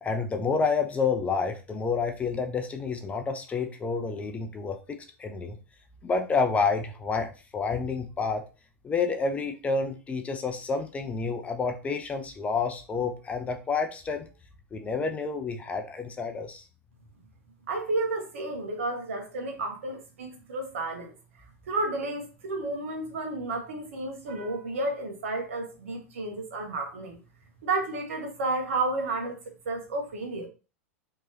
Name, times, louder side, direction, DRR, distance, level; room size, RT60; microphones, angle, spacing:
voice 1, 0.0-5.6 6.0-8.4 8.8-14.3 14.7-16.6, left 4 dB, 15° left, 0.6 m, -29 dB
voice 2, 17.7-21.1 21.7-27.2 27.6-29.4 29.6-30.5, right 2 dB, 60° right, 1.2 m, -31 dB
4.5 x 3.0 x 2.9 m
figure-of-eight pair, 90°, 8 cm